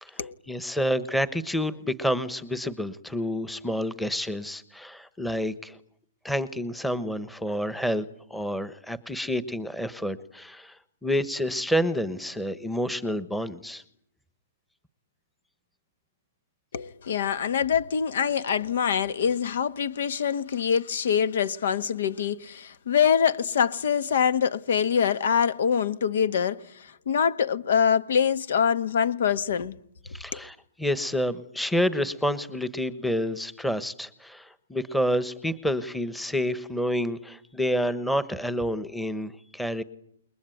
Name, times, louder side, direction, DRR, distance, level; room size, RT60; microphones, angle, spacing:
voice 1, 0.0-5.8 6.2-13.8 30.1-39.8, equal, 5° left, 1.2 m, -29 dB
voice 2, 16.7-29.7 30.3-30.4, left 7 dB, 70° left, 1.4 m, -24 dB
28.5 x 22.0 x 9.3 m
hypercardioid pair, 155°, 0 cm